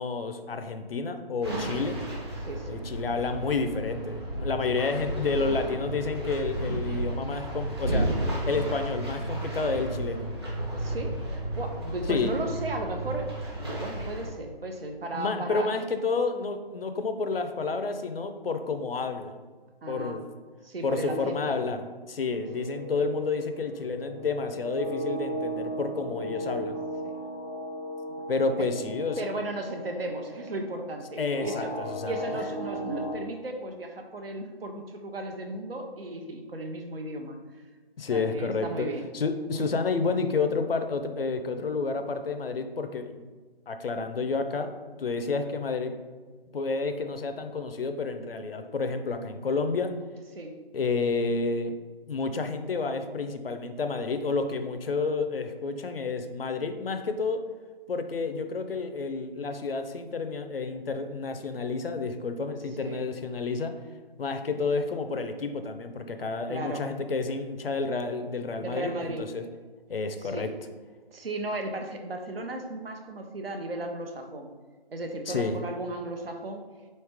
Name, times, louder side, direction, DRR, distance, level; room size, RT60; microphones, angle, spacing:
voice 1, 0.0-2.0 2.7-8.1 8.5-10.3 12.1-12.3 15.1-19.4 19.9-20.3 20.8-21.8 22.1-26.8 28.3-29.2 31.2-32.5 38.0-38.9 39.1-43.3 43.7-44.7 45.0-45.9 46.5-49.9 50.7-51.7 52.1-57.5 57.9-63.7 64.2-69.4 69.9-70.5 75.3-75.6, left 4 dB, 70° left, 8 dB, 0.6 m, -30 dB
sound 1, 1.4-14.3, right 1 dB, 25° right, 0.9 m, -33 dB
voice 2, 2.4-2.8 4.7-4.8 10.7-11.2 11.5-13.3 13.8-15.7 19.8-20.2 20.6-21.5 27.0-27.1 28.6-28.7 29.2-31.7 32.0-37.4 38.1-39.0 39.5-39.6 50.3-50.6 62.8-63.0 66.5-66.8 68.6-69.3 70.2-70.4 71.1-74.5 74.9-76.6, right 1 dB, 70° right, 4 dB, 0.8 m, -35 dB
sound 2, 22.3-33.1, right 1 dB, 50° right, 1.1 m, -36 dB
4.1 x 3.2 x 3.5 m, 1.4 s
figure-of-eight pair, 170°, 30 cm